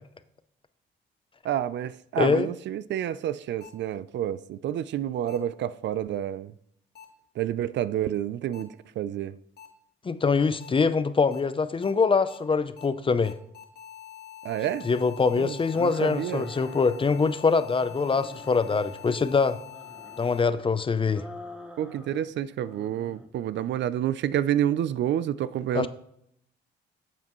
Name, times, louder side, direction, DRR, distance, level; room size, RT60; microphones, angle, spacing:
voice 1, 1.4-6.5 7.4-9.4 14.4-14.9 15.4-16.5 21.8-25.9, right 11 dB, 65° right, 0.4 m, -29 dB
voice 2, 2.2-2.5 10.0-13.3 14.8-19.6 20.2-21.2 25.7-25.9, left 4 dB, 25° left, 0.6 m, -24 dB
sound 1, 3.6-3.7 5.3-5.4 7.0-7.1 8.5-8.6 9.6-9.7 10.6-10.7 11.3-11.4 11.8-11.9 12.3-12.4 12.8-12.9 13.2-20.4, left 11 dB, 50° left, 1.7 m, -45 dB
sound 2, 15.7-17.4 17.8-19.2 19.6-20.7 21.1-22.3 22.6-23.3, left 1 dB, 5° right, 1.1 m, -46 dB
9.7 x 7.4 x 3.1 m
cardioid pair, 90°, 20 cm